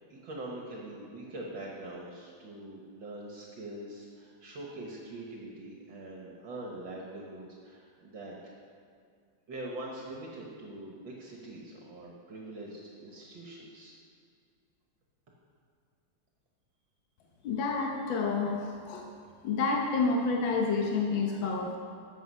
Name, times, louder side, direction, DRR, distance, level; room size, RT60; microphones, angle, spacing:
voice 1, 0.0-8.5 9.5-14.0, right 1 dB, 65° right, -3 dB, 2.1 m, -43 dB
voice 2, 17.4-19.0 19.4-21.8, left 4 dB, 65° left, 0 dB, 1.7 m, -29 dB
14.0 x 8.0 x 5.5 m, 2.2 s
omnidirectional pair, 2.3 m